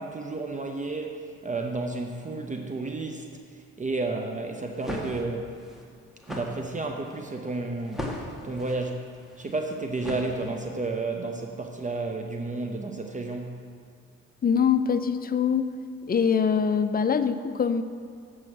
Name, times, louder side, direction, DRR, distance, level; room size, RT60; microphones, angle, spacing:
voice 1, 0.0-5.6 6.3-9.1 9.4-13.6, right 3 dB, 25° right, 4 dB, 0.7 m, -32 dB
sound 1, 4.7-10.8, equal, ahead, 1.5 m, -39 dB
voice 2, 14.4-15.7 16.1-17.8, left 6 dB, 30° left, 10 dB, 0.5 m, -23 dB
7.7 x 6.2 x 7.6 m, 2.2 s
cardioid pair, 90°, 30 cm